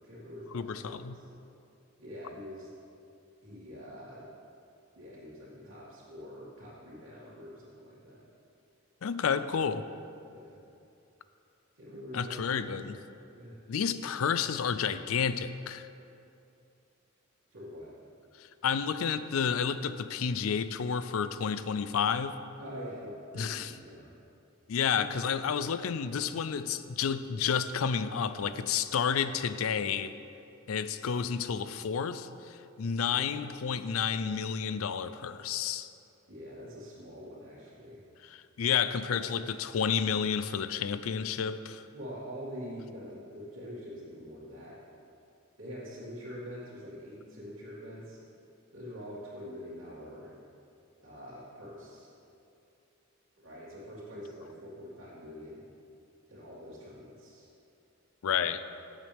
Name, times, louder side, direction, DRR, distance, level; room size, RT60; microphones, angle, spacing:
voice 1, 0.0-1.3 2.0-2.7 3.4-4.3 5.0-8.2 10.3-10.6 11.7-12.7 13.0-13.6 17.5-17.9 22.6-24.1 24.9-25.1 33.1-33.3 36.3-38.0 39.1-39.2 41.9-44.8 45.6-48.2 48.7-50.3 51.0-52.1 53.4-55.6 56.3-57.5, equal, 70° right, -10 dB, 2.3 m, -45 dB
voice 2, 0.5-1.2 9.0-9.9 12.1-13.0 13.7-15.9 18.6-22.4 23.3-23.7 24.7-30.2 30.7-35.9 38.3-41.8 58.2-58.6, left 7 dB, 85° left, 13 dB, 0.4 m, -30 dB
15.0 x 7.4 x 3.5 m, 2.7 s
head